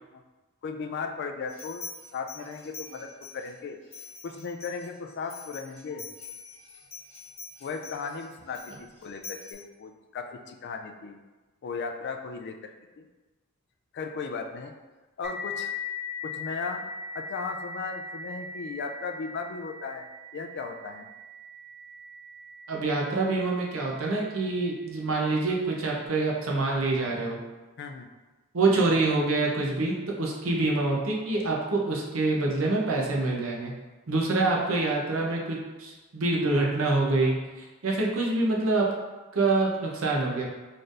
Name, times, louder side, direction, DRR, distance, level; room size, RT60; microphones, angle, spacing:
voice 1, 0.6-1.8 2.1-3.8 4.2-6.1 7.6-11.2 11.6-13.1 13.9-14.7 15.2-15.8 16.2-16.8 17.1-21.1 27.8-28.1, left 5 dB, 55° left, 5 dB, 0.4 m, -36 dB
sound 1, 1.5-3.5 3.9-9.5, left 4 dB, 75° left, 1.4 m, -45 dB
sound 2, 15.2-24.5, left 3 dB, 5° right, 0.7 m, -40 dB
voice 2, 22.7-27.4 28.5-33.7 34.1-38.9 39.3-40.4, right 2 dB, 70° right, -2 dB, 0.7 m, -26 dB
4.2 x 3.3 x 2.5 m, 1.2 s
head